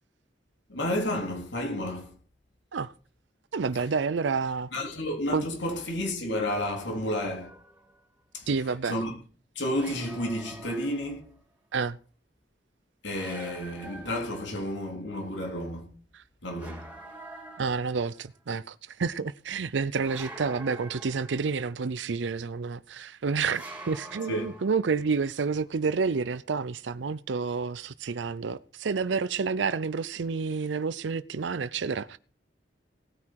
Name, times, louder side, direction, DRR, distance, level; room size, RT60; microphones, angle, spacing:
voice 1, 0.7-2.1 4.7-7.5 8.3-8.5 8.9-9.1 9.6-11.3 13.0-15.9 16.4-16.8 24.3-24.5, left 1 dB, 85° left, 3.8 m, -31 dB
voice 2, 3.5-4.7 5.3-5.4 8.5-8.9 11.7-12.0 16.1-16.2 17.6-32.2, right 5 dB, 85° right, 0.5 m, -29 dB
sound 1, 7.4-8.0 9.7-11.4 13.1-14.8 16.6-18.3 20.0-21.8 23.4-25.1, right 2 dB, 10° right, 3.6 m, -46 dB
18.0 x 9.6 x 4.7 m
head